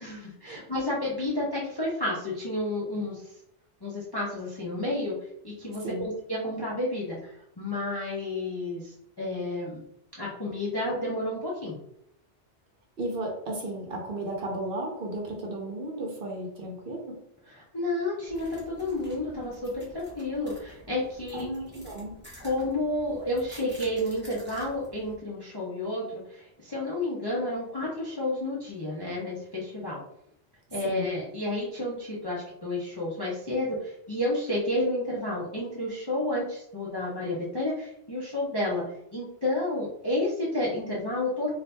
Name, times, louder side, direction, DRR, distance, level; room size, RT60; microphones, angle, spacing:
voice 1, 0.0-3.2 3.8-5.1 5.4-7.2 7.6-9.8 10.2-11.8 17.6-21.5 22.4-30.0 30.7-38.8 39.1-41.5, left 1 dB, 30° left, -5 dB, 0.5 m, -31 dB
voice 2, 13.0-17.2 21.3-22.1 30.8-31.1, right 1 dB, 55° right, 0 dB, 0.8 m, -34 dB
sound 1, 18.3-25.1, equal, 10° right, 0.7 m, -50 dB
2.7 x 2.5 x 3.3 m, 0.75 s
omnidirectional pair, 1.2 m